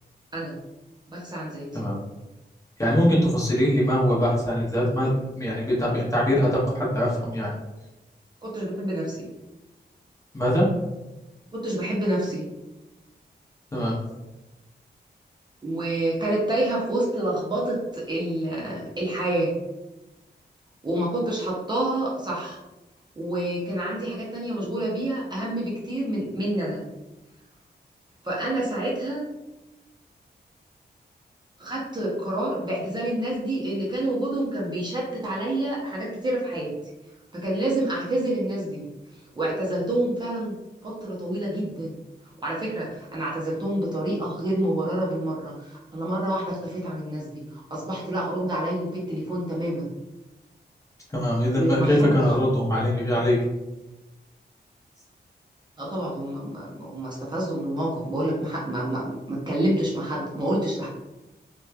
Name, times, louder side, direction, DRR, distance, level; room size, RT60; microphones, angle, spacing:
voice 1, 1.1-1.8 8.4-9.3 11.5-12.4 15.6-19.5 20.8-22.6 23.2-26.8 28.2-29.2 31.6-36.7 37.3-38.8 39.3-40.5 40.8-42.0 42.4-49.8 51.5-52.2 55.8-60.9, right 1 dB, 25° right, -6 dB, 0.5 m, -28 dB
voice 2, 2.8-7.5 10.3-10.7 13.7-14.0 51.1-53.4, equal, 15° left, -5 dB, 0.6 m, -22 dB
2.9 x 2.1 x 2.2 m, 1.0 s
wide cardioid pair, 170°, 18 cm